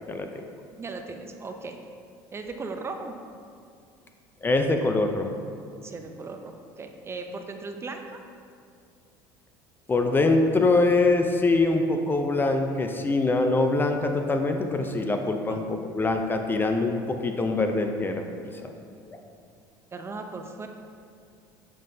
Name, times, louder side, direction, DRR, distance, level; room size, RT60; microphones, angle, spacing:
voice 1, 0.1-0.4 4.4-5.4 9.9-18.2 18.6-18.7 19.1-19.2, left 3 dB, 20° left, 5 dB, 0.5 m, -24 dB
voice 2, 0.8-1.8 2.3-3.2 5.8-8.2 15.5-15.6 19.9-20.7, right 3 dB, 25° right, 5 dB, 0.5 m, -37 dB
7.4 x 5.4 x 2.7 m, 2.3 s
supercardioid pair, 85°, 10 cm